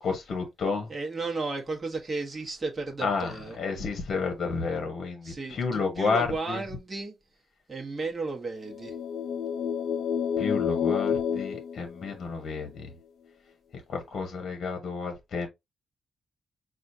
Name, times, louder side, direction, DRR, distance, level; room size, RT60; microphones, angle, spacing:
voice 1, 0.0-0.9 3.0-6.6 10.4-12.9 13.9-15.5, left 4 dB, 45° left, 1.1 m, -31 dB
voice 2, 0.9-3.6 5.2-7.1 7.7-8.9, right 3 dB, 20° right, 1.3 m, -34 dB
sound 1, 8.7-12.5, left 7 dB, 70° left, 0.6 m, -29 dB
6.1 x 2.4 x 2.7 m
wide cardioid pair, 170°, 0 cm